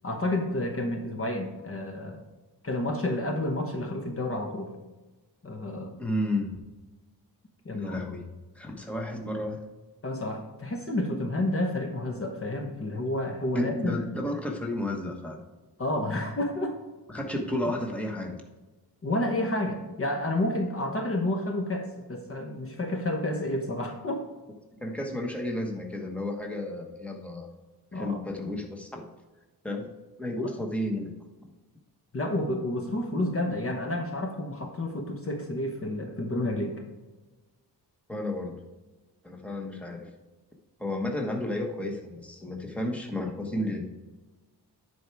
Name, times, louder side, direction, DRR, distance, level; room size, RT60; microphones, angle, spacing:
voice 1, 0.0-2.2 2.6-4.7 5.4-6.0 7.6-8.0 10.0-14.0 15.8-16.7 19.0-24.2 27.9-28.2 32.1-36.8, left 1 dB, 35° left, 3 dB, 1.0 m, -30 dB
voice 2, 6.0-6.5 7.8-8.2 8.5-9.6 13.5-15.4 17.1-18.4 24.8-27.5 27.9-29.1 29.6-29.9 30.2-31.1 38.1-38.6 39.2-40.1 40.8-43.8, left 1 dB, 5° left, 1 dB, 1.2 m, -32 dB
10.0 x 4.7 x 4.6 m, 1.2 s
wide cardioid pair, 125°, 39 cm